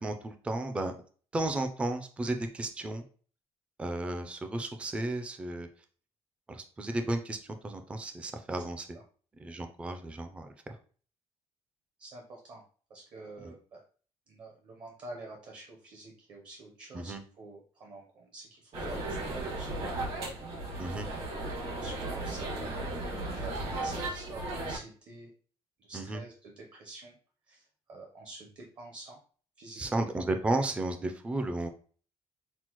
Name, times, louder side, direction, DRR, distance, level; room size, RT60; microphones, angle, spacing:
voice 1, 0.0-0.9 1.3-3.0 3.8-5.7 6.5-8.9 9.4-10.5 13.4-13.5 16.9-17.2 20.8-21.1 25.9-26.2 29.8-31.7, right 2 dB, 10° right, 6 dB, 0.3 m, -33 dB
voice 2, 8.5-9.0 12.0-12.6 12.9-13.8 14.3-19.8 21.3-25.3 25.8-27.2 27.5-29.2 29.6-30.0, right 2 dB, 40° right, 1 dB, 0.7 m, -48 dB
sound 1, 18.7-24.8, right 2 dB, 60° right, 1.6 m, -35 dB
5.9 x 2.1 x 2.9 m, 0.42 s
cardioid pair, 175°, 11 cm